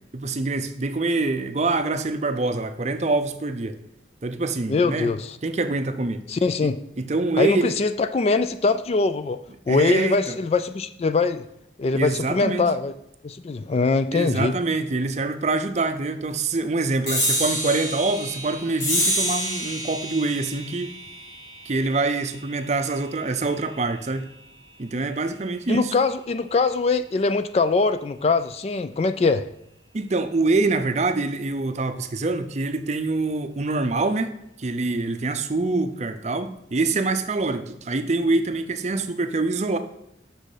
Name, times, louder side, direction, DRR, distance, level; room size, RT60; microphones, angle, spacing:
voice 1, 0.1-3.8 4.2-5.1 5.4-6.2 6.6-6.7 7.0-7.8 9.7-10.4 11.9-12.7 14.1-20.9 21.6-24.3 24.8-25.9 29.9-34.3 34.6-39.8, right 3 dB, 40° right, 9 dB, 0.6 m, -25 dB
voice 2, 4.7-5.4 6.3-6.8 7.4-9.4 9.7-11.4 11.8-12.9 13.2-14.5 25.7-29.5, left 4 dB, 35° left, 11 dB, 0.3 m, -22 dB
sound 1, 17.1-23.9, equal, 85° left, 3.1 m, -29 dB
6.5 x 6.3 x 4.9 m, 0.80 s
head